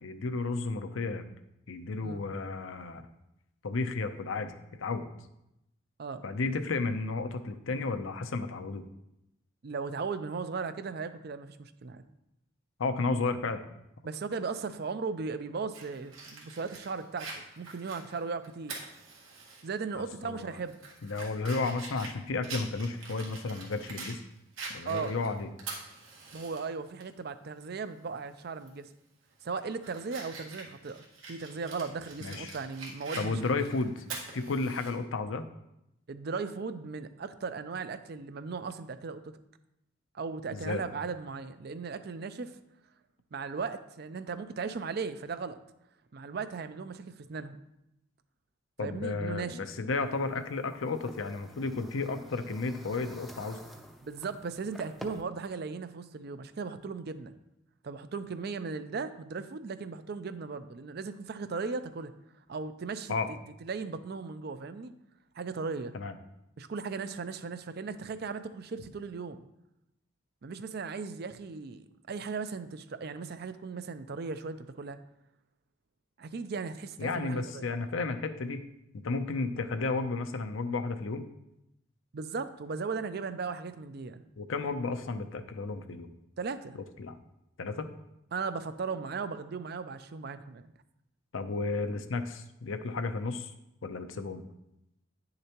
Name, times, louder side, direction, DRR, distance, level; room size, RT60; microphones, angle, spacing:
voice 1, 0.0-1.2 1.7-3.1 3.6-4.5 4.8-5.1 6.2-8.8 12.8-13.7 20.0-20.5 21.0-24.2 24.7-25.5 32.2-32.5 33.2-34.0 34.3-35.5 40.5-40.8 48.8-53.6 63.1-63.3 65.9-66.1 77.0-78.6 79.0-81.3 84.4-86.1 87.0-87.2 87.6-87.9 91.3-93.5 93.8-94.4, left 3 dB, 80° left, 8 dB, 0.6 m, -33 dB
voice 2, 9.6-12.0 14.0-18.8 19.6-20.9 24.9-25.2 26.3-28.9 29.4-33.4 34.1-34.2 36.1-39.3 40.1-42.6 43.3-45.6 46.1-47.6 48.8-49.7 54.0-57.3 57.8-62.1 62.5-64.9 65.3-65.9 66.6-69.4 70.4-75.0 76.2-77.7 82.1-84.3 86.4-86.8 88.3-90.7, right 4 dB, 50° right, 11 dB, 0.4 m, -37 dB
Fire, 15.7-19.6 20.0-20.1 20.6-24.2 24.6-26.6 27.0-27.1 28.6-28.8 29.3-34.9, right 3 dB, 90° right, 1.7 m, -44 dB
sound 1, 49.9-55.2, equal, ahead, 0.5 m, -50 dB
9.4 x 6.6 x 2.9 m, 0.86 s
head